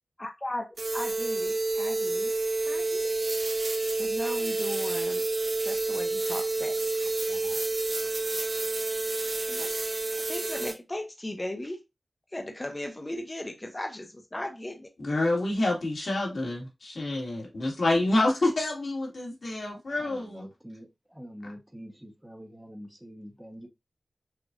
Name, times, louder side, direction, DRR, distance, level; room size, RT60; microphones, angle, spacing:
voice 1, 0.2-0.6 0.9-2.3 2.6-3.1 3.9-5.3 5.6-7.7 7.9-8.6 9.5-11.8 12.3-14.9, left 1 dB, 25° left, 0.7 m, -38 dB
sound 1, 0.8-10.7, right 2 dB, 60° right, 1.3 m, -29 dB
voice 2, 15.0-20.5, left 2 dB, 65° left, 2.0 m, -27 dB
voice 3, 20.0-23.7, equal, 10° right, 0.9 m, -45 dB
6.4 x 2.5 x 2.4 m
wide cardioid pair, 75°, 0 cm